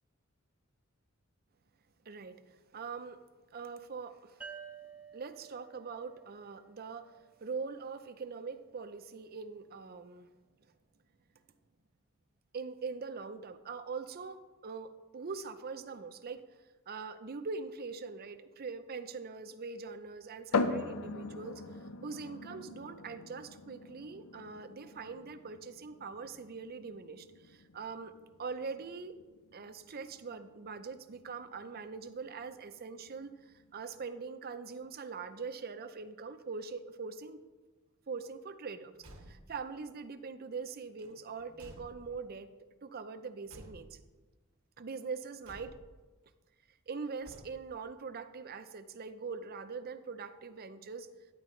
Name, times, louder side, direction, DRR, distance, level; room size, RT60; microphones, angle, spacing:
voice 1, 2.0-3.2 3.5-4.5 5.1-10.3 12.5-16.4 16.9-28.1 28.4-29.2 29.5-37.4 38.1-38.9 39.2-42.5 42.8-44.0 44.8-45.8 46.9-51.1, right 5 dB, 45° right, 9 dB, 0.6 m, -42 dB
sound 1, 4.4-7.9, right 6 dB, 5° right, 0.7 m, -52 dB
sound 2, 20.5-34.0, left 3 dB, 80° left, 0.6 m, -41 dB
Car / Truck / Slam, 38.9-39.7 40.9-42.4 43.5-44.2 45.4-46.1 47.2-47.9, right 1 dB, 90° right, 1.5 m, -54 dB
10.5 x 10.0 x 3.2 m, 1.2 s
head